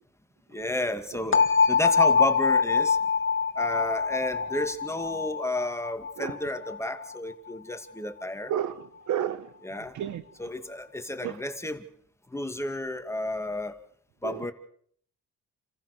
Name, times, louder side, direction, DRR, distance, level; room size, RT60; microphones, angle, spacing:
voice 1, 0.5-1.4 1.7-3.0 3.6-8.5 9.6-9.9 10.4-11.8 12.3-13.8 14.2-14.5, left 1 dB, 10° left, 2.3 m, -32 dB
sound 1, 1.3-7.2, left 5 dB, 40° left, 2.0 m, -24 dB
voice 2, 8.5-9.5 9.9-10.2 11.2-11.4 14.2-14.4, right 10 dB, 75° right, 1.1 m, -31 dB
30.0 x 15.0 x 6.8 m
cardioid pair, 90°, 30 cm